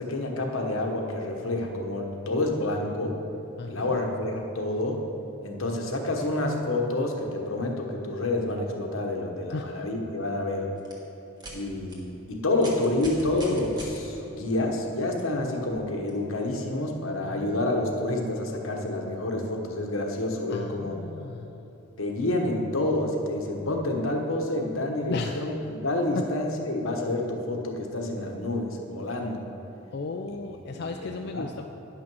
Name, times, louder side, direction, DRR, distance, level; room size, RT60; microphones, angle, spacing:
voice 1, 0.0-3.2 3.6-5.0 5.4-10.7 11.5-21.0 22.0-25.5 25.8-29.4 30.3-30.4 30.7-31.5, left 2 dB, 80° left, 2 dB, 1.1 m, -28 dB
voice 2, 3.6-4.0 9.5-9.7 17.2-17.7 20.5-21.7 25.1-25.4 26.2-26.3 29.9-31.7, left 3 dB, 50° left, 3 dB, 0.4 m, -35 dB
sound 1, 10.8-10.9 11.4-11.5 11.9-12.0 12.5-14.0 15.2-15.3 16.1-16.2, right 1 dB, 20° right, 1.4 m, -41 dB
9.9 x 6.0 x 6.1 m, 2.9 s
head